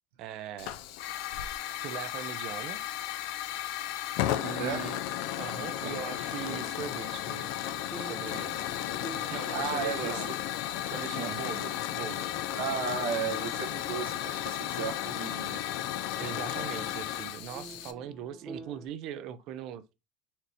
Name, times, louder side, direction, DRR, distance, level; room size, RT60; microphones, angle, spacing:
voice 1, 0.2-0.7 1.8-2.8 4.4-5.0 5.4-7.5 7.9-8.6 9.3-10.3 10.9-12.3 16.2-19.9, right 9 dB, 55° right, 0.5 m, -40 dB
Hiss / Fire, 0.6-17.9, left 12 dB, 70° left, 0.4 m, -34 dB
sound 1, 4.1-5.4 6.4-15.1 15.5-15.6 16.1-18.9, right 3 dB, 5° right, 0.9 m, -51 dB
voice 2, 9.2-10.4 11.2-11.3 12.5-15.6, right 7 dB, 85° right, 0.9 m, -35 dB
4.2 x 2.6 x 3.1 m
supercardioid pair, 120°, 0 cm